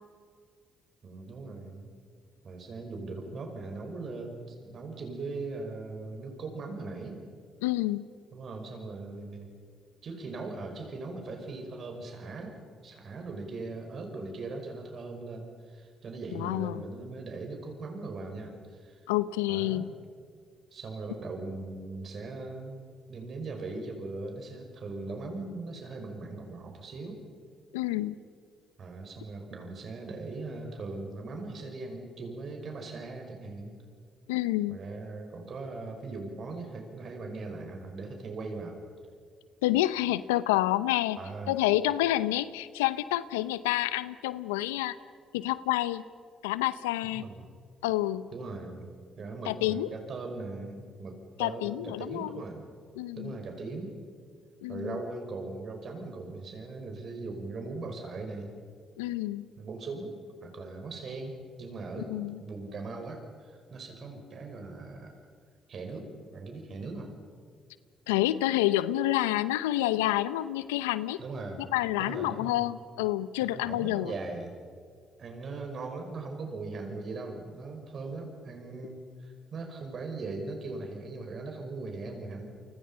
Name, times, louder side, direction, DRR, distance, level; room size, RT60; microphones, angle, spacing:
voice 1, 1.0-1.9 2.4-7.2 8.3-9.5 10.0-12.6 12.8-19.0 19.5-19.9 20.7-22.8 23.1-27.2 28.8-33.7 34.7-38.8 41.2-41.5 47.1-47.5 48.3-48.9 49.2-52.6 53.2-54.0 54.7-58.5 59.6-60.2 60.4-65.1 65.7-67.1 71.2-71.7 72.0-72.7 73.4-74.6 75.2-82.4, right 3 dB, 55° right, 3 dB, 6.0 m, -39 dB
voice 2, 7.6-8.0 16.3-16.8 19.1-19.9 27.7-28.1 34.3-34.8 39.6-41.2 41.5-45.0 45.3-46.0 46.4-47.2 47.8-48.3 49.5-49.9 51.4-52.4 53.0-53.3 54.6-55.0 59.0-59.5 62.1-62.4 68.1-71.2 71.7-74.1, left 15 dB, 90° left, 16 dB, 0.7 m, -28 dB
29.5 x 25.5 x 5.7 m, 2.1 s
hypercardioid pair, 50°, 0 cm